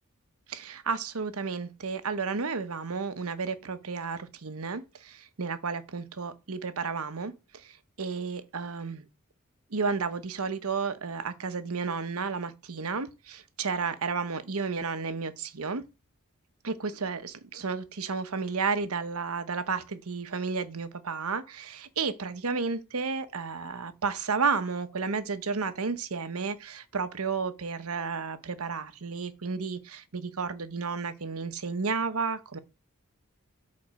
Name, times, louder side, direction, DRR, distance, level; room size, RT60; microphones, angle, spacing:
voice 1, 0.5-9.1 9.7-15.8 16.6-32.6, right 5 dB, 90° right, 1.0 m, -32 dB
8.9 x 4.2 x 6.3 m
head